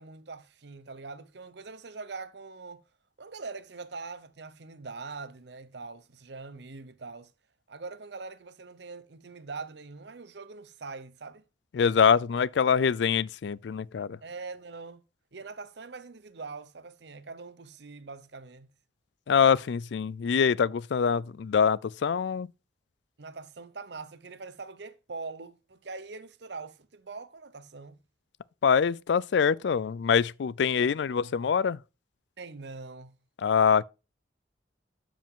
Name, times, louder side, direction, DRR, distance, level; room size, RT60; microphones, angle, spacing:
voice 1, 0.0-2.8 3.2-7.3 7.7-11.4 14.2-15.0 15.3-18.7 23.2-28.0 30.8-31.2 32.4-33.1, right 4 dB, 65° right, 0.8 m, -43 dB
voice 2, 11.7-14.2 19.3-22.5 28.6-31.8 33.4-33.8, left 6 dB, 70° left, 0.4 m, -24 dB
12.0 x 5.1 x 3.7 m
head